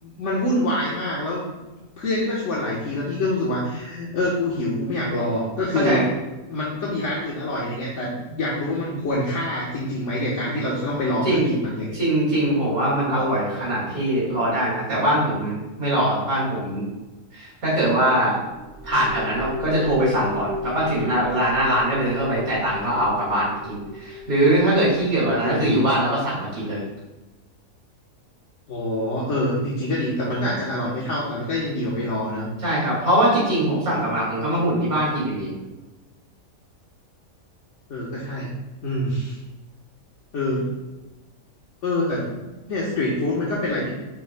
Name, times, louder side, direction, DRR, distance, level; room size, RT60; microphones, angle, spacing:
voice 1, 0.0-1.6 2.0-6.0 6.5-12.0 25.2-25.8 28.7-32.5 37.9-38.5 38.8-39.4 40.3-40.7 41.8-42.2 42.7-43.9, left 1 dB, 60° left, -5 dB, 1.5 m, -25 dB
voice 2, 5.7-6.1 11.2-11.5 11.9-16.8 17.3-18.4 18.8-26.8 32.6-35.5, right 1 dB, 80° right, -7 dB, 2.8 m, -22 dB
sound 1, 18.5-26.1, left 1 dB, 55° right, 2.3 m, -35 dB
9.1 x 6.1 x 2.2 m, 1.1 s
omnidirectional pair, 1.5 m